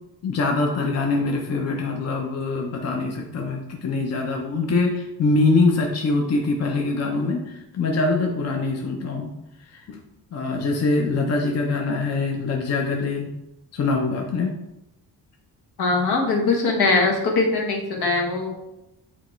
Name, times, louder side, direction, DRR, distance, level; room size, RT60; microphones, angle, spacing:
voice 1, 0.2-9.3 9.7-10.0 10.3-13.3 13.7-14.5, left 3 dB, 40° left, 1 dB, 0.7 m, -23 dB
voice 2, 15.8-18.5, left 3 dB, 75° left, 1 dB, 1.5 m, -21 dB
8.4 x 3.1 x 4.4 m, 0.89 s
wide cardioid pair, 175°, 38 cm